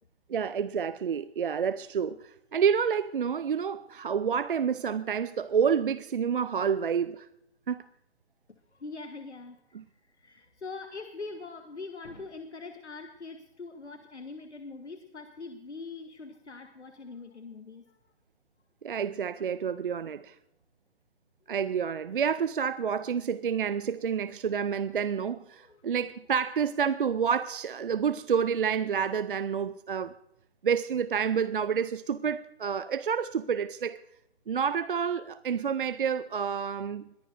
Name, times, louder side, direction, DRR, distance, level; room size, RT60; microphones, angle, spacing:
voice 1, 0.3-7.3 7.7-7.8 9.7-9.8 18.8-20.4 21.5-30.1 30.6-34.0 34.5-37.3, right 7 dB, 50° right, 0.5 m, -29 dB
voice 2, 8.5-18.0 25.5-25.9, left 3 dB, 80° left, 1.4 m, -43 dB
21.5 x 14.5 x 2.6 m
figure-of-eight pair, 145°, 34 cm